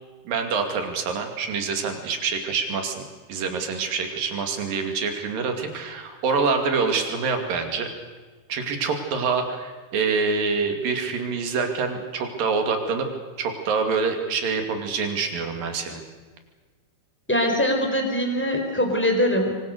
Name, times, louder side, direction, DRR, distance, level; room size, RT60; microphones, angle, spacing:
voice 1, 0.3-7.9 8.5-13.1 13.4-16.0, right 5 dB, 50° right, 5 dB, 3.7 m, -26 dB
voice 2, 17.3-19.6, equal, 5° left, 3 dB, 3.6 m, -22 dB
26.5 x 24.0 x 6.7 m, 1.4 s
omnidirectional pair, 5.7 m